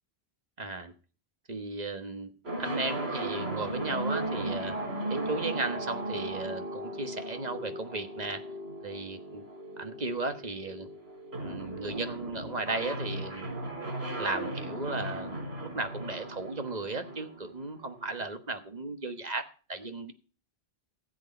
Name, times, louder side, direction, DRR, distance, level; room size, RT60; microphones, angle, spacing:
voice 1, 0.6-0.9 1.5-2.3 2.6-4.8 5.1-8.4 8.8-9.4 9.8-10.9 11.4-13.6 14.2-20.1, right 3 dB, 40° right, 8 dB, 1.4 m, -35 dB
sound 1, 2.4-18.2, right 1 dB, 80° right, 4.9 m, -37 dB
15.0 x 7.9 x 4.3 m, 0.36 s
omnidirectional pair, 1.0 m